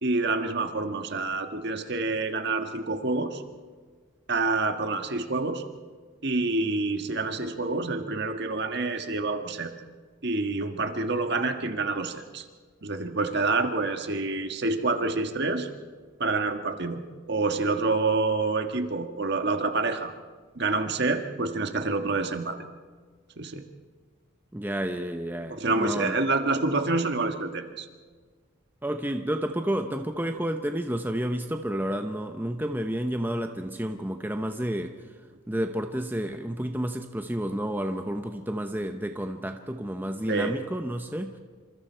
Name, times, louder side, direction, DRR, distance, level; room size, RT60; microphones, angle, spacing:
voice 1, 0.0-3.4 4.3-5.6 6.2-9.7 10.2-12.4 12.8-15.7 16.2-17.0 17.3-20.1 20.5-22.6 23.4-23.6 25.5-27.8 40.3-40.6, right 3 dB, 55° right, 6 dB, 1.6 m, -27 dB
voice 2, 24.5-26.2 28.8-35.0 35.5-41.4, equal, 10° right, 5 dB, 0.9 m, -30 dB
27.5 x 27.0 x 4.5 m, 1.5 s
head